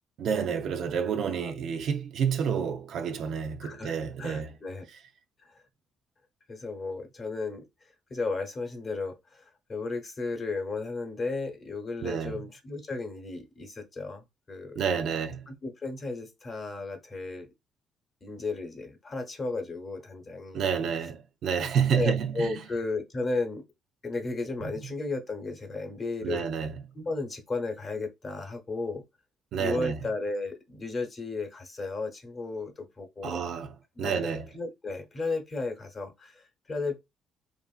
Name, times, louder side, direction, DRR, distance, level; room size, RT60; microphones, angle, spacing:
voice 1, 0.2-4.5 12.0-12.4 14.8-15.5 20.5-22.6 24.6-24.9 26.2-26.9 29.5-30.0 33.2-34.5, right 7 dB, 65° right, 0.4 m, -29 dB
voice 2, 3.6-4.8 5.5-5.6 6.5-7.7 8.1-14.8 15.5-17.5 18.2-20.6 22.0-23.6 24.0-26.5 26.9-29.0 29.5-33.4 34.0-37.0, left 3 dB, 35° left, 0.9 m, -34 dB
2.9 x 2.5 x 2.4 m
cardioid pair, 115°, 0 cm